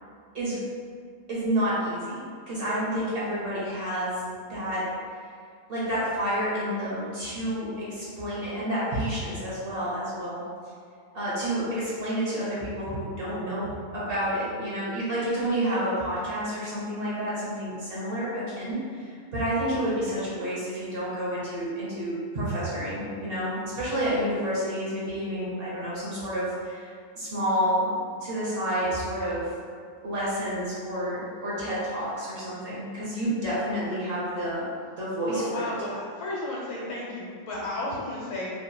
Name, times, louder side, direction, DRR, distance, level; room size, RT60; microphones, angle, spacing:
voice 1, 1.3-4.2 4.5-5.0 5.7-10.4 11.1-29.5 30.0-34.6 35.0-35.7, equal, 55° right, -8 dB, 0.8 m, -29 dB
voice 2, 35.3-38.5, left 1 dB, 80° left, -5 dB, 1.2 m, -33 dB
2.8 x 2.8 x 2.2 m, 2.1 s
omnidirectional pair, 1.4 m